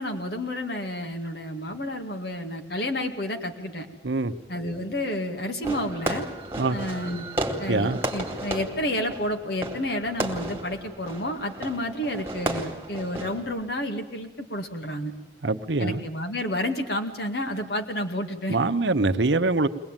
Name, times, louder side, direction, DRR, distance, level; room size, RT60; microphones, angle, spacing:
voice 1, 0.0-3.9 4.5-6.3 6.7-7.3 7.6-15.1 15.8-18.6, left 1 dB, 60° left, 4 dB, 2.1 m, -30 dB
Fireworks, 5.6-13.7, right 1 dB, 15° right, 2.4 m, -33 dB
voice 2, 7.7-8.0 15.4-16.1 18.5-19.7, right 3 dB, 75° right, 10 dB, 0.9 m, -24 dB
22.5 x 19.0 x 9.0 m, 1.1 s
head